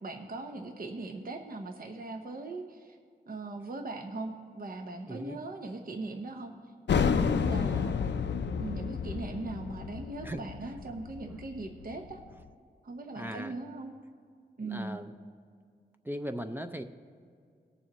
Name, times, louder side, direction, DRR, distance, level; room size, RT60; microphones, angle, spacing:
voice 1, 0.0-3.0 3.3-6.5 6.9-8.0 8.6-12.2 12.8-13.9 14.6-15.0, right 2 dB, 55° right, 4 dB, 0.8 m, -39 dB
voice 2, 5.1-5.4 7.7-8.3 10.2-10.4 13.1-13.5 14.6-15.1 16.0-16.8, equal, 10° right, 7 dB, 0.5 m, -39 dB
sound 1, 6.9-12.2, left 6 dB, 80° left, 0.5 m, -30 dB
19.0 x 7.0 x 3.0 m, 2.2 s
wide cardioid pair, 80°, 18 cm